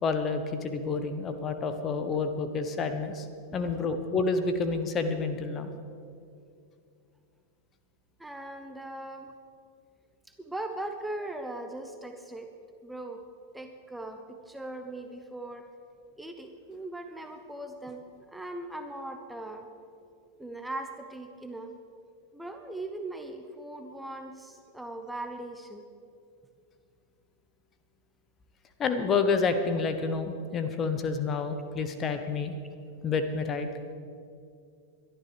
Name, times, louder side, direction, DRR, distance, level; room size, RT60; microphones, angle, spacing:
voice 1, 0.0-3.3 3.5-5.7 28.8-32.5 33.0-33.7, left 4 dB, 25° left, 8 dB, 1.1 m, -29 dB
voice 2, 8.2-9.3 10.3-12.5 12.8-13.2 13.5-15.7 16.2-19.7 20.4-21.7 22.3-25.8, right 2 dB, 5° right, 5 dB, 0.9 m, -39 dB
22.5 x 12.5 x 3.5 m, 2.4 s
figure-of-eight pair, 90°, 0 cm